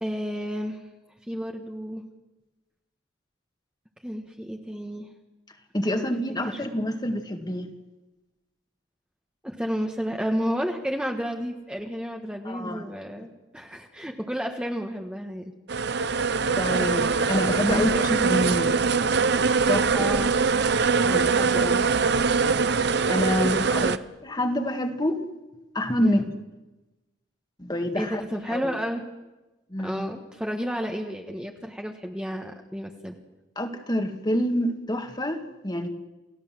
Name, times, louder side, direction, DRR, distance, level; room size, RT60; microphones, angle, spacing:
voice 1, 0.0-0.8 1.3-2.0 4.0-5.1 5.8-6.1 6.5-6.6 9.4-13.3 13.5-15.5 17.7-18.1 19.9-20.3 21.0-21.9 23.5-24.0 26.0-26.2 27.9-29.0 29.8-33.2, equal, 5° right, 2 dB, 1.4 m, -31 dB
voice 2, 5.7-7.7 12.4-12.9 16.5-18.8 19.7-20.1 21.1-21.3 23.0-23.8 24.2-25.2 25.7-26.2 27.6-28.2 28.5-28.7 29.7-30.1 33.6-35.9, left 1 dB, 20° left, 5 dB, 1.8 m, -27 dB
sound 1, 15.7-24.0, right 5 dB, 60° right, 0.7 m, -23 dB
29.0 x 16.5 x 7.5 m, 1.1 s
head